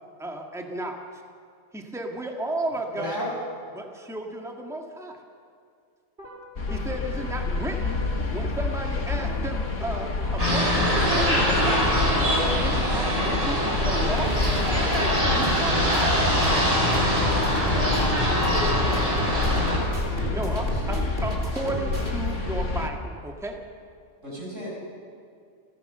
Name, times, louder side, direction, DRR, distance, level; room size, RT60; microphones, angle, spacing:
voice 1, 0.2-1.0 1.7-3.2 3.7-5.2 6.7-8.0 8.3-14.4 14.6-16.2 20.3-23.6, right 1 dB, ahead, 2 dB, 1.8 m, -33 dB
voice 2, 2.9-3.3 24.2-24.7, equal, 75° right, -4 dB, 7.9 m, -33 dB
sound 1, 6.2-22.8, equal, 45° right, 3.1 m, -35 dB
sound 2, 6.6-22.9, left 3 dB, 75° left, 2.0 m, -28 dB
sound 3, 10.4-19.8, equal, 30° right, 6.9 m, -24 dB
voice 3, 17.7-19.4 19.7-20.4 20.9-21.1, right 3 dB, 90° right, -2 dB, 2.7 m, -42 dB
28.5 x 16.0 x 6.8 m, 2.3 s
omnidirectional pair, 1.3 m